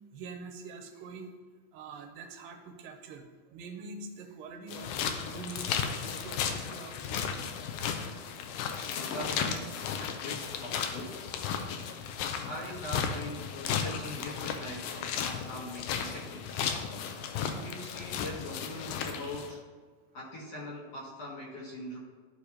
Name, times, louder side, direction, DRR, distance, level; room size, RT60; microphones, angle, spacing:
voice 1, 0.1-1.3 1.7-7.5 16.9-17.2, right 4 dB, 85° right, 4 dB, 2.4 m, -45 dB
sound 1, 4.7-19.5, left 7 dB, 80° left, 1.8 m, -35 dB
voice 2, 8.8-11.3 12.4-16.6 17.4-19.6 20.1-22.0, left 1 dB, 60° left, -4 dB, 1.8 m, -42 dB
13.0 x 4.8 x 2.8 m, 1.4 s
omnidirectional pair, 4.0 m